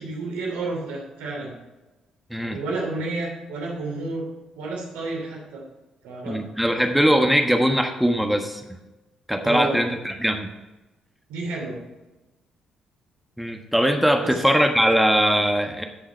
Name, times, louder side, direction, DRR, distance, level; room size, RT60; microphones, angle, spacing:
voice 1, 0.0-1.5 2.4-4.2 4.5-5.6 6.0-6.4 9.4-9.8 11.3-11.8 14.2-14.4, right 2 dB, 75° right, -1 dB, 3.1 m, -30 dB
voice 2, 6.3-8.6 9.3-10.5 13.4-15.9, equal, ahead, 4 dB, 1.4 m, -21 dB
14.0 x 6.4 x 4.4 m, 1.1 s
hypercardioid pair, 45°, 2 cm